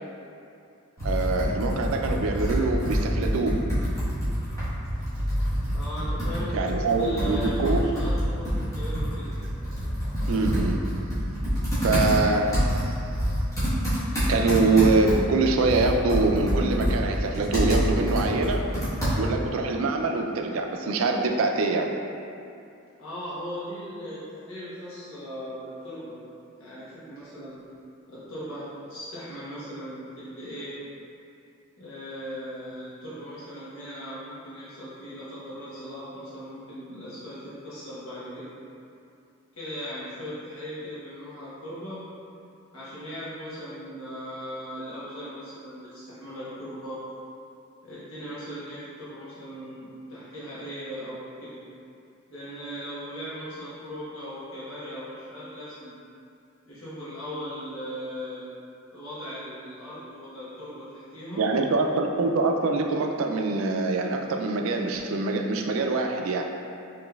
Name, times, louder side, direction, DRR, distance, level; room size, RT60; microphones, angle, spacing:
Computer keyboard, 1.0-19.5, equal, 15° left, 1.3 m, -27 dB
voice 1, 1.0-3.6 6.5-7.8 10.3-10.8 11.8-12.6 12.9-13.0 14.3-18.6 19.1-21.9 61.4-66.5, right 3 dB, 70° right, 3 dB, 0.4 m, -24 dB
voice 2, 5.7-9.3 23.0-26.2 26.6-27.6 28.1-30.8 31.8-38.5 39.5-42.0 42.7-47.0 47.8-51.6 52.3-55.9 56.7-58.4 58.9-61.5, equal, 80° left, -11 dB, 1.2 m, -38 dB
5.0 x 3.0 x 2.3 m, 2.6 s
head